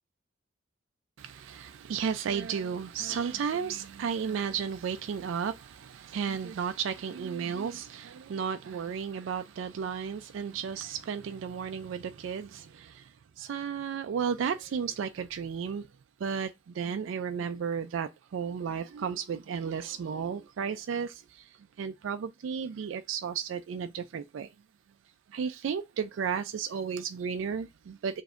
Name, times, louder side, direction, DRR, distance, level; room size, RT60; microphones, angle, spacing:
voice 1, 1.2-15.9 16.2-21.5 21.8-24.5 25.3-28.2, right 7 dB, 75° right, 0.3 m, -33 dB
6.9 x 2.6 x 2.4 m
head